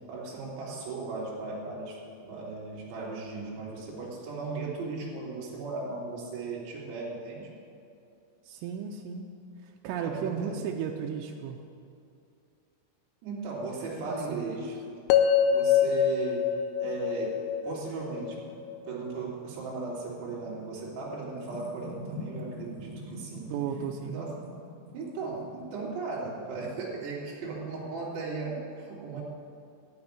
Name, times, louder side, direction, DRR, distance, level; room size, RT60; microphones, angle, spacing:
voice 1, 0.1-7.5 10.0-10.5 13.2-15.0 15.5-16.5 16.8-18.4 18.9-23.5 24.0-24.3 24.9-29.2, right 4 dB, 60° right, -6 dB, 4.5 m, -37 dB
voice 2, 8.4-9.3 9.6-11.6 14.0-14.2 23.5-24.2 29.1-29.2, right 7 dB, 90° right, 1 dB, 3.3 m, -34 dB
sound 1, 15.1-19.2, left 8 dB, 90° left, 3.3 m, -26 dB
sound 2, 17.6-27.7, left 2 dB, 5° right, 1.4 m, -46 dB
13.5 x 6.2 x 9.7 m, 2.5 s
omnidirectional pair, 5.8 m